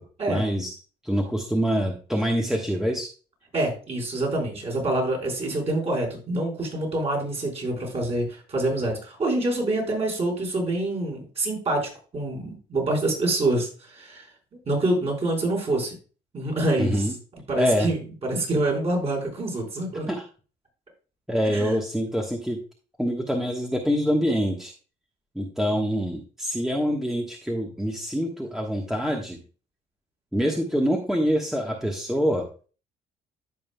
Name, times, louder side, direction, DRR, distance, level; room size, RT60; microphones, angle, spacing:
voice 1, 0.3-0.7 1.0-3.1 16.8-17.1 17.6-17.9 20.1-20.2 21.3-22.6 23.0-24.7 25.3-29.4 30.3-32.5, equal, ahead, 0 dB, 1.2 m, -25 dB
voice 2, 3.5-14.3 14.7-15.9 16.3-17.1 17.5-20.1 21.4-21.8, right 2 dB, 35° right, -1 dB, 4.8 m, -26 dB
14.5 x 5.5 x 2.2 m, 0.37 s
cardioid pair, 110°, 17 cm